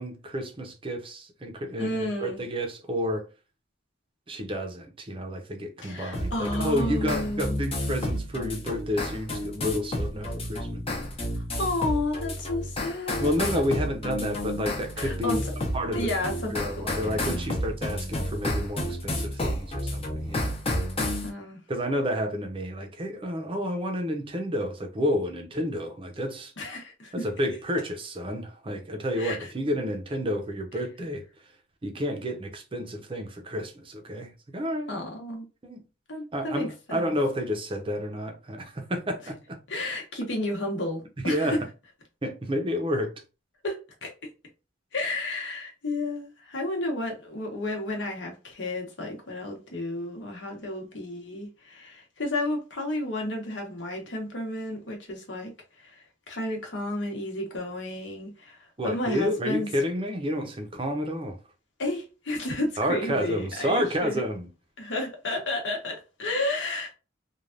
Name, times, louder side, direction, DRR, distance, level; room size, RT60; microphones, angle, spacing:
voice 1, 0.0-3.3 4.3-10.8 13.2-15.4 15.7-16.1 16.5-20.6 21.7-26.5 27.1-31.2 31.8-34.9 35.6-35.8 36.3-39.6 41.2-41.6 42.2-43.1 58.8-61.4 62.8-64.5, equal, 30° right, 0.6 m, -30 dB
voice 2, 1.8-2.4 5.8-7.6 11.6-13.4 15.0-15.5 15.8-17.4 21.2-21.6 26.6-27.3 27.7-27.8 29.2-29.5 34.9-35.5 36.1-37.1 39.7-41.6 43.6-44.1 44.9-55.5 55.8-58.6 58.8-59.7 61.8-64.2 64.8-66.9, left 1 dB, 70° left, 1.1 m, -32 dB
sound 1, 6.1-21.3, left 1 dB, 30° left, 0.8 m, -31 dB
3.2 x 2.3 x 2.5 m
head